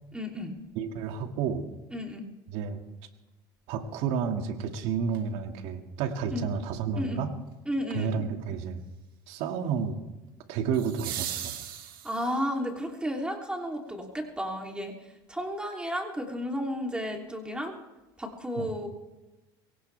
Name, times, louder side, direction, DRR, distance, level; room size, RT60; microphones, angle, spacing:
voice 1, 0.1-0.6 1.9-2.2 6.3-6.4 7.0-7.2 7.6-8.2 12.0-14.9 15.3-17.7 18.2-18.9, equal, 10° right, 1 dB, 3.1 m, -32 dB
voice 2, 0.8-1.7 2.5-2.8 3.7-7.3 7.9-8.8 9.3-10.0 10.5-11.6 18.6-18.7, right 6 dB, 70° right, 5 dB, 2.2 m, -31 dB
sound 1, 5.1-5.2 10.7-12.5 14.7-14.8, right 10 dB, 90° right, 2.3 m, -37 dB
23.0 x 17.5 x 3.4 m, 1.0 s
supercardioid pair, 85°, 11 cm